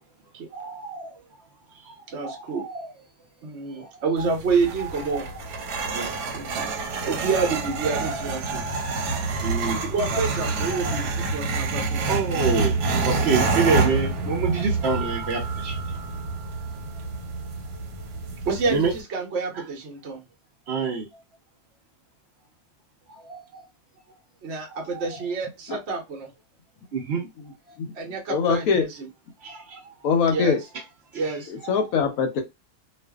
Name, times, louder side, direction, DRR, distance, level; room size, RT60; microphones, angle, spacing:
voice 1, 0.5-2.9 3.7-3.9 5.1-5.2 5.6-6.4 7.0-7.1 8.1-8.2 9.4-10.2 10.7-11.0 11.8-15.8 18.7-18.9 19.5-19.6 20.7-21.1 23.1-23.7 24.7-25.1 26.9-27.2 27.7-27.8 29.4-29.9 31.1-31.4 31.6-31.7, right 4 dB, 65° right, 0.6 m, -28 dB
voice 2, 2.1-2.6 3.4-5.3 6.3-6.7 7.0-8.7 9.8-12.0 18.5-20.2 24.4-26.3 27.9-28.9 30.3-30.6 31.1-31.5, right 4 dB, 50° right, 0.9 m, -28 dB
sound 1, 4.2-19.0, right 3 dB, 85° right, 1.2 m, -27 dB
voice 3, 28.3-28.8 30.0-30.6 31.5-32.4, left 6 dB, 70° left, 0.9 m, -22 dB
2.5 x 2.4 x 2.3 m
omnidirectional pair, 1.7 m